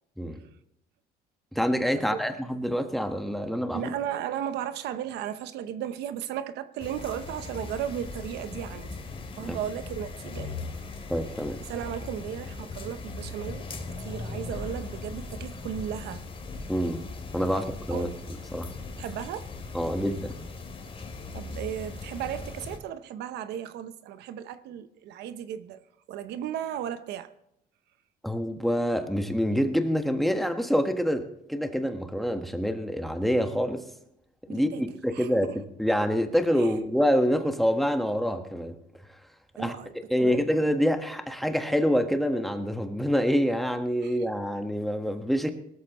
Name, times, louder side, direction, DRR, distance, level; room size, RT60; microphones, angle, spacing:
voice 1, 1.5-3.9 9.3-9.6 11.1-11.6 16.7-17.0 17.3-18.1 18.5-18.7 19.7-20.3 28.2-33.8 34.5-35.5 35.8-38.7 39.6-39.8 40.1-45.5, equal, ahead, 1.4 m, -26 dB
voice 2, 3.7-9.0 9.4-11.0 11.7-16.2 17.5-17.6 17.9-18.2 19.0-19.5 21.3-25.8 26.1-27.3 34.5-34.8 35.1-35.6 36.6-36.7 39.6-39.9 40.2-40.4 44.0-44.3, right 10 dB, 80° right, 0.9 m, -35 dB
sound 1, 6.8-22.8, left 3 dB, 35° left, 2.6 m, -39 dB
19.5 x 13.5 x 3.1 m
cardioid pair, 110°, 17 cm